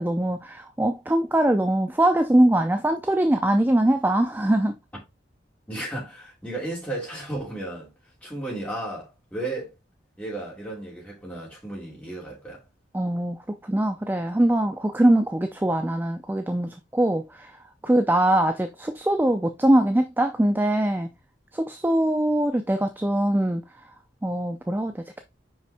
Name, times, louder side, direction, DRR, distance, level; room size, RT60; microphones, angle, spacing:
voice 1, 0.0-4.8 12.9-17.5 17.8-21.1 21.5-23.6 24.2-25.2, right 1 dB, 10° right, 0.4 m, -22 dB
voice 2, 5.7-7.9 8.2-9.7 10.2-12.6 17.8-17.9, right 1 dB, 10° left, 2.8 m, -34 dB
5.5 x 5.2 x 3.3 m
head